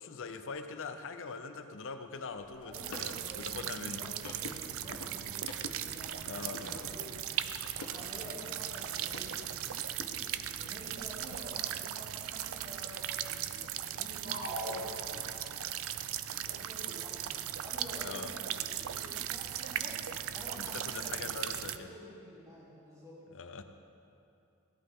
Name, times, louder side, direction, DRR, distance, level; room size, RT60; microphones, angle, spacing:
voice 1, 0.0-4.1 6.2-6.7 18.0-18.3 20.6-21.9 23.3-23.6, left 4 dB, 60° left, 8 dB, 0.7 m, -42 dB
sound 1, 2.3-9.4 9.7-11.1, left 2 dB, 80° left, 1.3 m, -49 dB
voice 2, 2.6-5.5 5.9-7.1 7.7-9.7 10.6-15.5 16.2-17.3 17.6-20.0 20.3-23.1, equal, 15° right, -9 dB, 3.2 m, -49 dB
sound 2, 2.7-21.8, right 11 dB, 65° right, 0.5 m, -38 dB
sound 3, 14.2-15.7, equal, 45° right, 1.4 m, -40 dB
16.5 x 11.5 x 3.8 m, 2.8 s
head